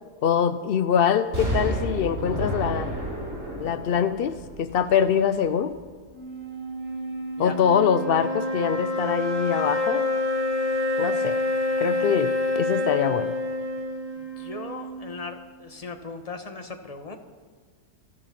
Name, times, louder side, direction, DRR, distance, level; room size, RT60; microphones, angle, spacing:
voice 1, 0.2-2.9 3.6-5.8 7.4-10.1 11.0-11.4 11.8-13.3, left 8 dB, 80° left, 12 dB, 0.5 m, -24 dB
Explosion, 1.3-5.3 5.7-5.8, right 1 dB, 50° right, 6.3 m, -31 dB
sound 1, 6.1-15.5, left 2 dB, 70° right, 3.5 m, -28 dB
voice 2, 14.2-17.2, left 4 dB, 25° left, 6 dB, 1.2 m, -38 dB
26.0 x 8.9 x 6.0 m, 1.5 s
omnidirectional pair, 1.6 m